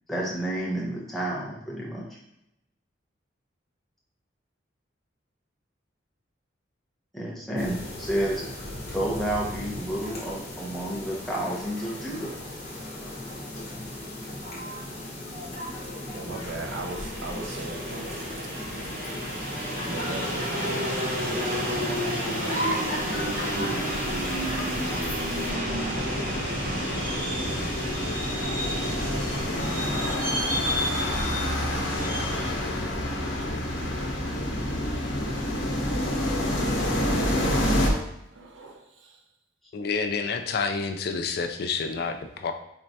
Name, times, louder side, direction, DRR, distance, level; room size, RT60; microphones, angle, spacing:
voice 1, 0.1-2.0 7.1-8.4 8.9-12.3 23.6-23.8, right 1 dB, ahead, -6 dB, 0.9 m, -30 dB
sound 1, 7.6-25.5, left 1 dB, 35° left, 1.0 m, -36 dB
voice 2, 16.1-18.8 19.8-22.6 32.3-32.8 33.1-33.6 38.3-39.2 40.5-40.7, right 2 dB, 85° right, 2 dB, 0.6 m, -40 dB
sound 2, 16.6-32.5, equal, 45° right, 0.9 m, -31 dB
sound 3, 25.5-37.9, left 1 dB, 85° left, 0.9 m, -28 dB
voice 3, 39.7-42.5, left 5 dB, 55° left, 6 dB, 0.3 m, -29 dB
4.4 x 3.1 x 2.7 m, 0.82 s
head